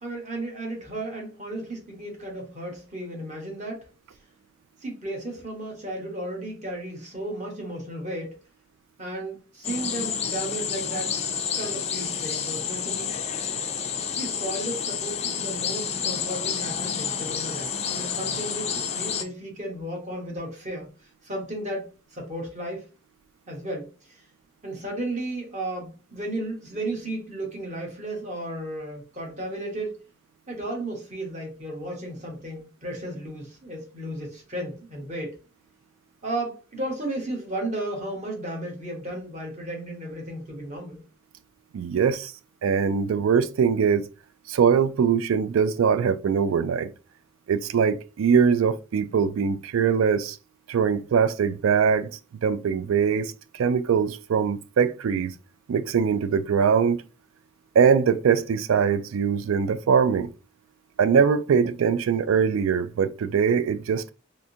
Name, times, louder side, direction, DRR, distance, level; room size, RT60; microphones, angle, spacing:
voice 1, 0.0-3.9 4.8-8.4 9.0-11.2 11.6-13.1 14.1-22.8 23.5-24.2 24.6-30.0 30.5-35.4 36.2-41.0, right 1 dB, 35° right, 1.1 m, -34 dB
sound 1, 9.6-19.2, left 7 dB, 30° left, 0.3 m, -29 dB
voice 2, 41.7-42.3 42.6-44.0 44.5-46.9 47.5-50.4 50.7-52.1 52.4-55.3 55.7-57.0 57.8-60.3 61.0-64.1, right 6 dB, 80° right, 0.3 m, -22 dB
3.5 x 2.6 x 2.7 m
head